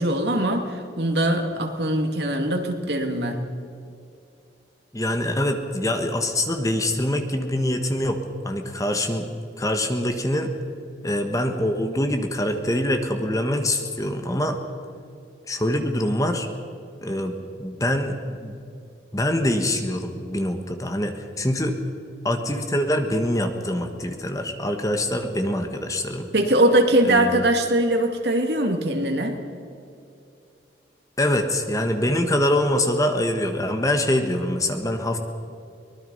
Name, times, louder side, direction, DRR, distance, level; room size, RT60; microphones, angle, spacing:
voice 1, 0.0-3.4 26.3-29.4, right 1 dB, 65° right, 4 dB, 2.4 m, -21 dB
voice 2, 4.9-9.3 9.6-10.5 11.0-14.6 15.5-16.5 17.0-18.5 19.1-21.8 22.2-26.3 27.0-27.4 31.2-35.2, left 1 dB, 20° left, 5 dB, 1.4 m, -24 dB
24.0 x 20.0 x 5.5 m, 2.5 s
head